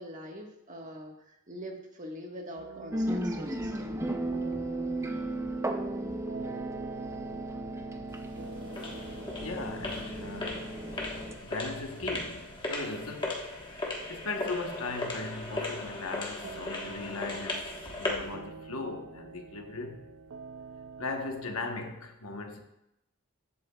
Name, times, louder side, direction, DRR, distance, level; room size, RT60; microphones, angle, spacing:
voice 1, 0.0-4.0, equal, 35° right, 1.4 m, -43 dB
sound 1, 2.6-21.6, right 5 dB, 65° right, 0.5 m, -48 dB
sound 2, 2.9-11.3, right 1 dB, 15° right, 0.5 m, -35 dB
sound 3, 8.1-18.3, left 2 dB, 20° left, 1.3 m, -37 dB
voice 2, 9.4-10.8 11.4-13.5 13.8-20.1 21.0-22.6, left 3 dB, 70° left, 1.1 m, -38 dB
14.5 x 8.3 x 2.3 m
head